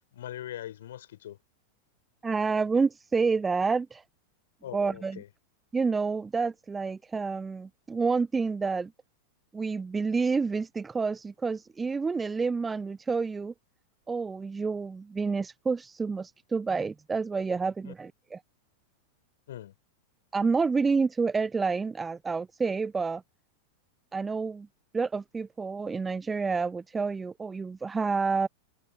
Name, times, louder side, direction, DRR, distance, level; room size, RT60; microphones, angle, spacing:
voice 1, 0.1-1.4 4.6-5.3 17.9-18.0 19.5-19.7, left 12 dB, 60° left, 7.2 m, -41 dB
voice 2, 2.2-4.0 4.7-5.2 5.7-8.9 9.5-13.5 14.1-18.4 20.3-23.2 24.1-24.7 24.9-28.5, right 4 dB, 15° right, 0.8 m, -29 dB
figure-of-eight pair, 90°, 0 cm